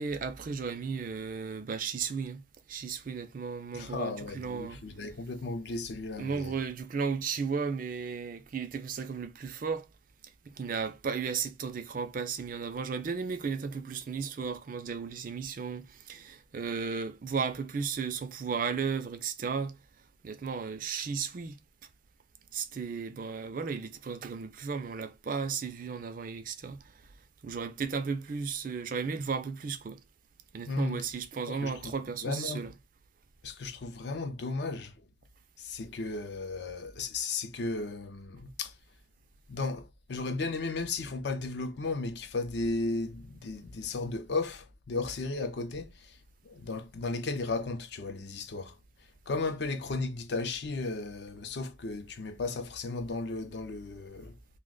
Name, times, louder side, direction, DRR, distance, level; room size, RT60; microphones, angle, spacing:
voice 1, 0.0-2.4 2.7-4.8 6.2-9.9 10.5-19.8 20.2-21.6 22.5-26.8 27.4-30.0 30.5-32.7, right 5 dB, 45° right, 0.4 m, -34 dB
voice 2, 3.7-6.6 30.7-31.0 31.5-31.9 32.2-32.7 33.4-34.9 35.6-38.7 39.5-46.2 46.4-48.8 49.3-54.3, left 3 dB, 60° left, 0.5 m, -35 dB
2.8 x 2.1 x 3.7 m
head